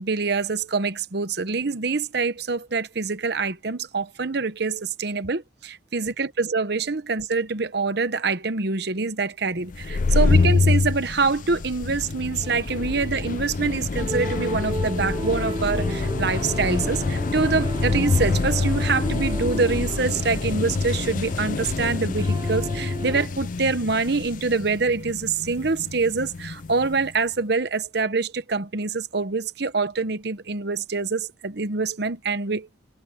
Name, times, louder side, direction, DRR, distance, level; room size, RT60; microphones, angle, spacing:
voice 1, 0.0-32.7, right 4 dB, 55° right, 0.9 m, -25 dB
sound 1, 9.7-27.1, left 3 dB, 40° left, 0.4 m, -26 dB
sound 2, 12.4-23.3, right 2 dB, 20° right, 0.5 m, -35 dB
head